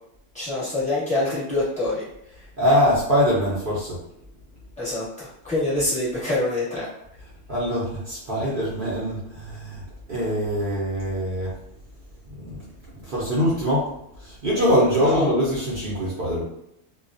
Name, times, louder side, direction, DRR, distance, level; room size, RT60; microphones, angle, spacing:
voice 1, 0.3-2.0 4.8-6.9 15.1-15.3, left 2 dB, 5° left, -10 dB, 1.0 m, -25 dB
voice 2, 2.6-4.0 7.5-9.8 10.1-11.5 12.4-12.6 13.0-13.9 14.2-16.4, equal, 55° right, -7 dB, 0.6 m, -23 dB
2.3 x 2.2 x 2.5 m, 0.77 s
omnidirectional pair, 1.6 m